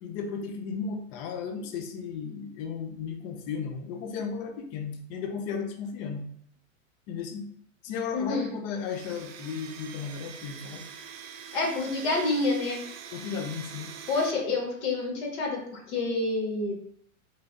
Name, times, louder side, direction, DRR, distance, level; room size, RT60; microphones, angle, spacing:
voice 1, 0.0-6.2 7.1-7.5 7.8-10.8 13.1-13.9, left 6 dB, 45° left, 4 dB, 0.6 m, -35 dB
voice 2, 8.1-8.5 11.5-12.8 14.1-16.7, left 3 dB, 60° left, 1 dB, 1.0 m, -28 dB
Domestic sounds home sounds, 8.8-14.3, right 7 dB, 70° right, 0.5 m, -44 dB
3.2 x 2.4 x 2.3 m, 0.64 s
hypercardioid pair, 110°, 40 cm